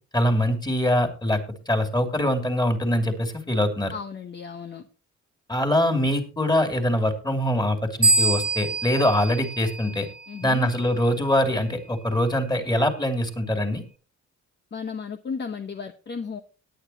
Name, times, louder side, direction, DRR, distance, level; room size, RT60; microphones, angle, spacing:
voice 1, 0.1-1.4 1.7-3.9 5.5-10.1 10.4-13.8, left 1 dB, 15° left, 6 dB, 2.7 m, -23 dB
voice 2, 3.9-4.9 10.3-10.7 14.7-16.4, left 5 dB, 35° left, 7 dB, 1.0 m, -34 dB
sound 1, 8.0-10.5, right 2 dB, 30° right, 1.2 m, -25 dB
18.5 x 9.1 x 2.9 m, 0.35 s
cardioid pair, 90°, 30 cm